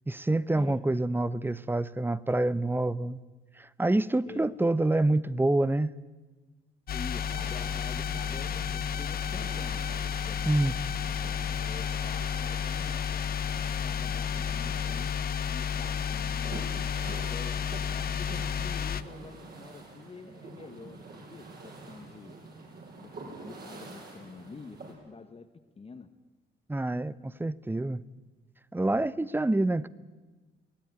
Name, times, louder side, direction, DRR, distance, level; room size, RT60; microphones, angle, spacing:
voice 1, 0.1-3.2 3.6-5.9 10.5-10.7 26.7-28.0 28.7-29.9, right 2 dB, 10° right, 0.7 m, -27 dB
sound 1, 6.9-19.0, left 8 dB, 50° left, 0.8 m, -32 dB
voice 2, 6.9-9.9 10.2-10.9 11.6-15.1 15.4-16.8 17.3-22.3 23.0-25.5 25.8-26.1, left 4 dB, 30° left, 1.2 m, -47 dB
sound 2, 7.1-24.9, right 3 dB, 50° right, 6.9 m, -46 dB
23.0 x 17.0 x 9.4 m
cardioid pair, 90°, 20 cm